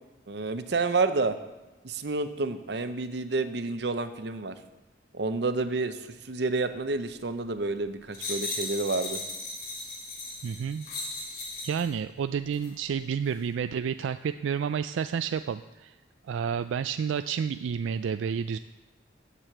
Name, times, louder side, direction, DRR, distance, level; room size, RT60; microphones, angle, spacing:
voice 1, 0.3-1.4 1.8-4.6 5.1-9.2, right 3 dB, 60° right, 10 dB, 0.7 m, -29 dB
sound 1, 8.1-11.9 12.5-12.7, left 2 dB, 50° left, 3.4 m, -36 dB
voice 2, 10.4-10.9 11.6-15.9 16.3-18.6, right 7 dB, 85° right, 11 dB, 0.3 m, -30 dB
8.3 x 7.5 x 7.7 m, 1.1 s
head